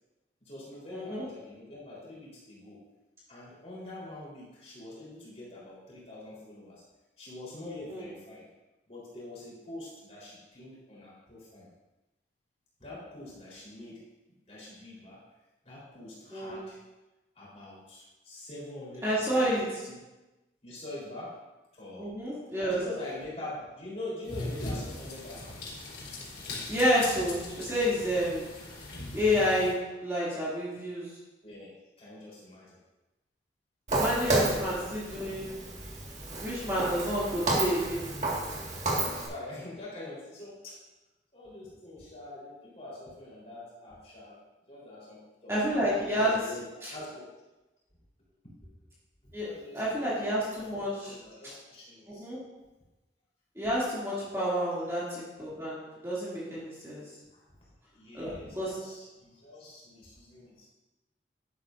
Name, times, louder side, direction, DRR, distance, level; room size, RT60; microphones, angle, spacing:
voice 1, 0.4-2.8 3.3-6.8 7.2-8.4 8.9-11.7 12.8-14.0 14.5-15.2 15.6-16.8 17.3-19.6 19.9-20.0 20.6-21.4 21.7-22.1 22.7-25.7 31.4-32.8 34.2-34.8 39.0-40.8 41.3-44.4 44.7-47.3 48.4-48.9 49.2-52.3 54.5-54.7 57.3-60.7, left 2 dB, 35° left, -6 dB, 3.8 m, -44 dB
voice 2, 0.9-1.2 7.9-8.0 16.3-16.6 19.0-19.8 22.0-22.8 26.7-28.6 29.1-31.1 33.9-35.6 36.4-38.1 45.5-46.4 46.8-46.9 49.3-51.2 51.4-51.5 52.1-52.4 53.6-57.0 58.1-58.3 58.5-58.7, equal, 15° right, -8 dB, 2.5 m, -29 dB
sound 1, 24.2-29.7, left 2 dB, 75° left, 3.6 m, -40 dB
Walk footsteps, 33.9-39.3, right 2 dB, 40° right, 1.8 m, -31 dB
11.0 x 11.0 x 2.6 m, 1.1 s
head